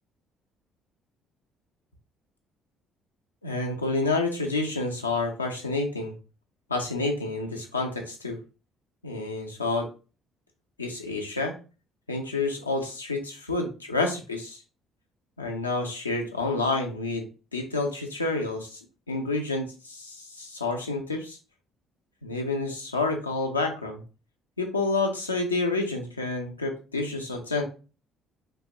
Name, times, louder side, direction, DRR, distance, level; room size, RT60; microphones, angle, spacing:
voice 1, 3.4-6.1 6.7-8.4 9.0-9.9 10.8-11.6 12.1-14.6 15.4-17.3 17.5-18.8 19.1-21.4 22.2-24.0 24.6-27.6, left 3 dB, 85° left, 2 dB, 0.3 m, -29 dB
2.7 x 2.2 x 2.5 m, 0.35 s
figure-of-eight pair, 50°, 0 cm